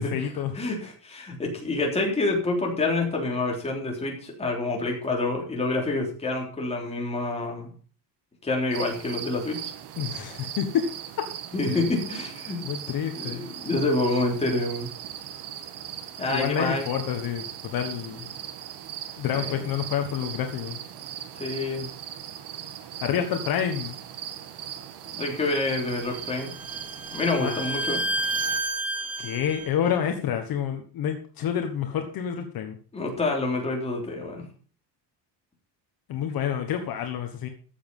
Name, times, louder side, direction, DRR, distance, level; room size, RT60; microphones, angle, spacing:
voice 1, 0.0-0.5 10.0-10.9 11.7-11.9 12.6-13.5 16.3-18.3 19.2-20.8 23.0-24.0 27.4-27.6 29.2-32.8 36.1-37.5, left 9 dB, 55° left, 5 dB, 1.4 m, -28 dB
voice 2, 0.5-7.7 8.4-9.6 11.5-12.6 13.2-14.9 16.2-16.9 19.3-19.6 21.4-21.9 25.1-26.5 27.1-28.0 32.9-34.4, left 2 dB, 15° left, -1 dB, 3.6 m, -27 dB
sound 1, 8.7-28.6, right 10 dB, 65° right, 1.6 m, -39 dB
Bowed string instrument, 25.9-29.7, right 2 dB, 5° right, 1.2 m, -31 dB
14.0 x 7.4 x 5.5 m, 0.41 s
cardioid pair, 175°, 42 cm